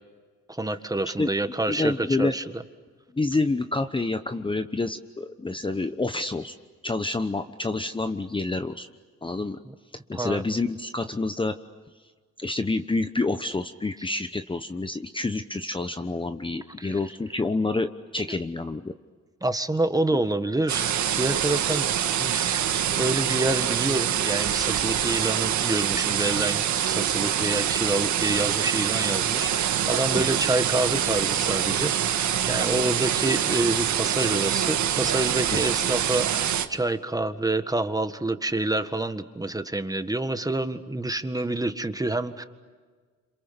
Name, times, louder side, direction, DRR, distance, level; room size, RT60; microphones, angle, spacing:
voice 1, 0.5-2.4 9.6-9.7 10.1-10.4 16.8-17.0 18.3-18.4 19.4-21.9 22.2-22.6 22.9-42.4, right 2 dB, 10° right, 9 dB, 1.7 m, -27 dB
voice 2, 1.7-2.3 3.1-6.5 6.8-8.9 9.2-9.6 10.1-11.5 12.4-18.9 30.1-30.2 35.5-35.6, left 3 dB, 15° left, 9 dB, 1.0 m, -28 dB
sound 1, 20.7-36.7, right 10 dB, 70° right, 1.8 m, -25 dB
29.0 x 27.5 x 6.9 m, 1.5 s
cardioid pair, 90°, 30 cm